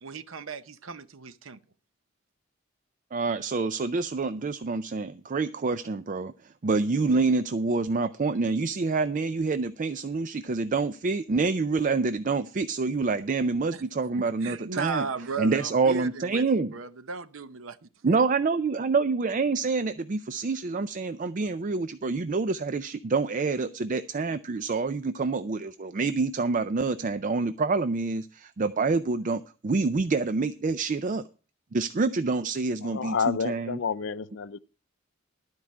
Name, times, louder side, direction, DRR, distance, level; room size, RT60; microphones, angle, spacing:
voice 1, 0.0-1.6 13.7-13.8 14.2-18.2, right 4 dB, 90° right, 0.8 m, -36 dB
voice 2, 3.1-6.3 6.6-15.1 15.4-16.7 18.0-31.2 31.7-33.8, right 4 dB, 40° right, 0.4 m, -27 dB
voice 3, 32.8-34.6, left 6 dB, 65° left, 0.5 m, -29 dB
12.5 x 4.7 x 8.4 m
head